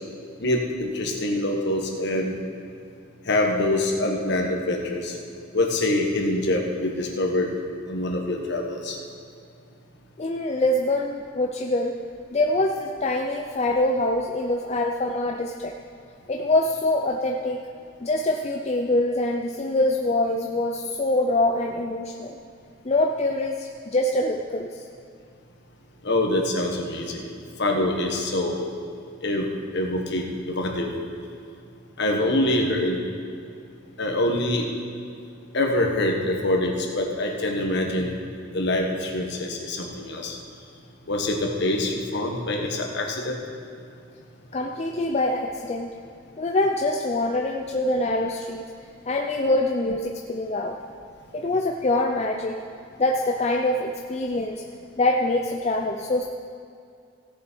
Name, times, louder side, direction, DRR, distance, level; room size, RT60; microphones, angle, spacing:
voice 1, 0.4-2.4 3.3-5.1 5.5-7.5 7.9-9.0 26.0-27.3 27.6-28.6 29.2-29.5 29.7-30.9 32.0-33.0 34.0-34.7 35.5-38.1 38.5-40.3 41.1-43.4, left 1 dB, 55° left, 1 dB, 1.4 m, -25 dB
voice 2, 10.2-12.0 12.3-15.7 16.3-17.6 18.0-22.4 22.8-24.8 44.5-45.9 46.4-48.6 49.1-50.8 51.3-52.6 53.0-54.6 55.0-56.2, left 2 dB, 30° left, 1 dB, 0.5 m, -24 dB
16.5 x 6.8 x 4.6 m, 2.4 s
head